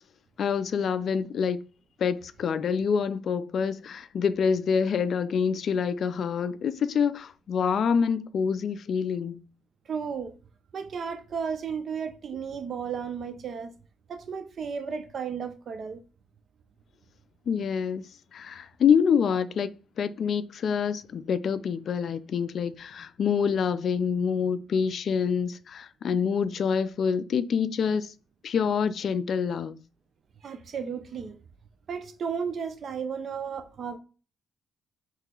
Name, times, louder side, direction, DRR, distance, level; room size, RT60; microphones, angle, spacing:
voice 1, 0.4-1.6 2.0-9.4 17.5-18.0 18.3-19.7 20.0-28.1 28.4-29.8, left 6 dB, 60° left, 0.3 m, -26 dB
voice 2, 9.9-10.3 10.7-13.7 14.1-16.0 30.4-31.4 31.9-34.0, right 6 dB, 55° right, 0.6 m, -34 dB
3.1 x 2.8 x 3.7 m
cardioid pair, 90°, 0 cm